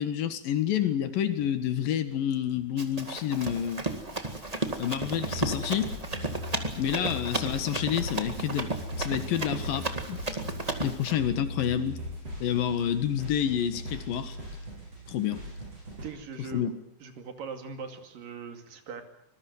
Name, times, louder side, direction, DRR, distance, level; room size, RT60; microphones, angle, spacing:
voice 1, 0.0-3.9 4.8-5.9 6.8-10.2 10.8-12.0 12.4-14.4 15.1-15.4 16.5-16.7, left 10 dB, 75° left, 10 dB, 3.3 m, -29 dB
Run, 2.8-11.1, right 2 dB, 15° right, 1.3 m, -34 dB
sound 1, 5.1-16.1, equal, 45° right, 9.1 m, -39 dB
voice 2, 16.0-16.6 17.0-19.0, right 5 dB, 70° right, 6 dB, 4.1 m, -40 dB
25.0 x 21.0 x 8.0 m, 0.73 s
omnidirectional pair, 4.1 m